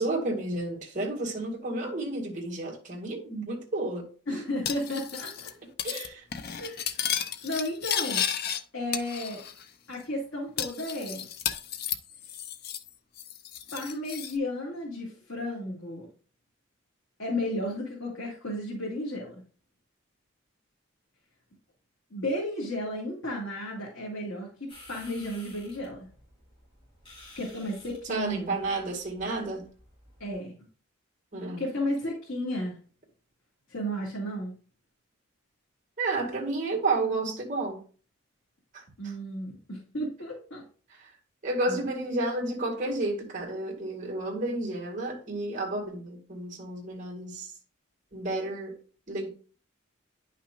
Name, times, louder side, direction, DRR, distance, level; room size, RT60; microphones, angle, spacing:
voice 1, 0.0-4.1 5.8-6.2 28.1-29.7 31.3-31.6 36.0-37.8 38.7-39.1 40.9-41.1 41.4-47.5 48.1-48.8 49.1-49.3, right 2 dB, 40° right, 2.1 m, -31 dB
voice 2, 4.3-5.5 6.6-7.0 7.4-8.2 8.7-9.4 9.9-11.3 13.7-16.1 17.2-19.3 22.1-26.0 27.4-28.6 30.2-30.5 31.6-32.8 33.7-34.5 39.0-40.6 41.7-41.9, left 1 dB, 75° left, 2.2 m, -33 dB
Cutlery silverware, 4.6-5.5 5.8-6.1 6.3-8.6 8.9-9.6 9.9-10.0 10.6-12.9 13.2-14.3, left 9 dB, 50° left, 0.6 m, -33 dB
sound 1, 24.7-30.3, left 1 dB, 25° left, 3.6 m, -53 dB
10.0 x 5.8 x 2.5 m
head